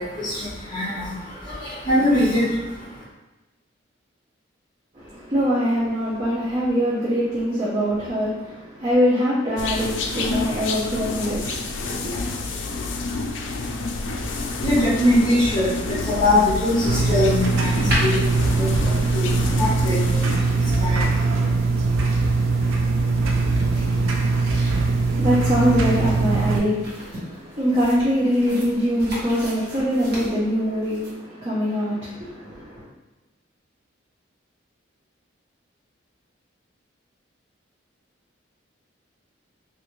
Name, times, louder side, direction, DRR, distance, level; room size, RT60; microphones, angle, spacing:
voice 1, 0.0-3.0 14.0-21.5, left 1 dB, 20° left, -7 dB, 1.0 m, -23 dB
voice 2, 4.9-12.4 25.0-32.8, equal, 30° right, -9 dB, 0.6 m, -23 dB
sound 1, 9.6-20.4, left 3 dB, 70° left, 0.4 m, -29 dB
sound 2, 16.9-26.6, right 3 dB, 85° right, 0.4 m, -21 dB
sound 3, 17.8-31.1, equal, 50° right, 1.0 m, -35 dB
3.3 x 2.4 x 3.0 m, 1.1 s
head